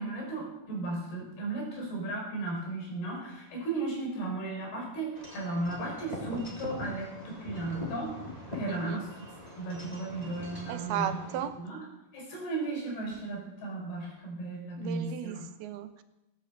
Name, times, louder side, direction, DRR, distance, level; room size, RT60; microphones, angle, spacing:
voice 1, 0.0-8.1 8.5-9.1 9.6-11.2 11.6-11.9 12.1-15.4, right 2 dB, 85° left, 0 dB, 6.7 m, -35 dB
Wind chime / Wind, 5.2-11.5, left 1 dB, 10° left, 3.0 m, -42 dB
voice 2, 8.7-9.0 10.7-11.6 14.8-16.0, right 10 dB, 85° right, 9 dB, 3.0 m, -35 dB
17.5 x 9.7 x 8.0 m, 0.93 s
omnidirectional pair, 4.4 m